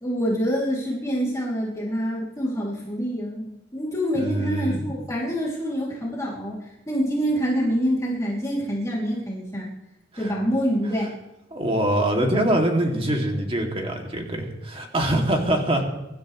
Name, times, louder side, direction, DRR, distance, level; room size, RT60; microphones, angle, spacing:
voice 1, 0.0-9.7 10.2-11.1, equal, 15° left, -5 dB, 2.9 m, -26 dB
voice 2, 4.1-4.8 10.1-10.3 11.5-15.8, right 1 dB, 30° right, 1 dB, 2.6 m, -24 dB
24.0 x 12.5 x 3.2 m, 1.0 s
head